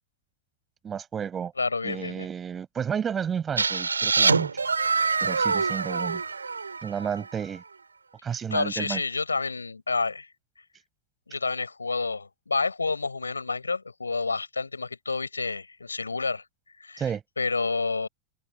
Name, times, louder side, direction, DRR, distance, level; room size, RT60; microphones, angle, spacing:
voice 1, 0.8-1.5 1.8-4.7 5.2-6.2 6.8-7.6 8.2-9.0 17.0-17.2, right 7 dB, 20° right, 5.3 m, -32 dB
voice 2, 1.6-2.3 8.3-10.3 11.3-16.4 16.8-17.0 17.4-18.1, left 4 dB, 80° left, 7.2 m, -29 dB
sound 1, 3.6-7.3, right 4 dB, 75° right, 2.4 m, -25 dB
figure-of-eight pair, 90°, 0 cm